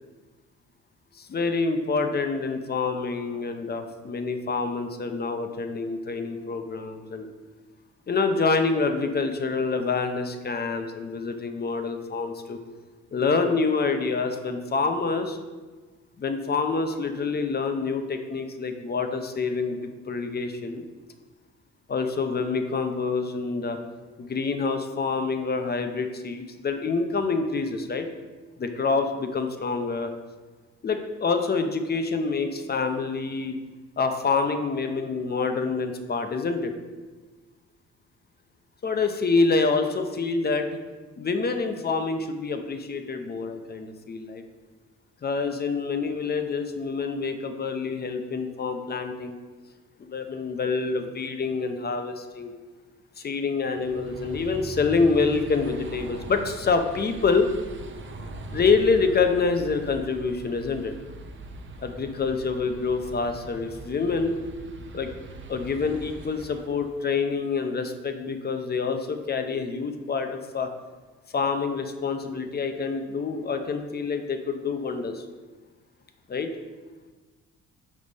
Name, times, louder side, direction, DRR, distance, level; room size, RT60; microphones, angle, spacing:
voice 1, 1.2-7.3 8.1-12.6 13.1-15.4 16.2-20.8 21.9-23.8 24.2-28.1 28.6-30.1 30.8-33.6 34.0-36.7 38.8-40.7 41.2-44.4 45.2-49.4 50.0-52.5 53.2-57.5 58.5-60.9 61.8-64.4 64.9-65.1 65.5-70.7 71.3-75.2 76.3-76.5, left 4 dB, 35° left, 6 dB, 0.6 m, -26 dB
sound 1, 53.6-67.1, right 1 dB, 40° right, 0.7 m, -41 dB
5.4 x 5.0 x 4.0 m, 1.3 s
cardioid pair, 90°, 30 cm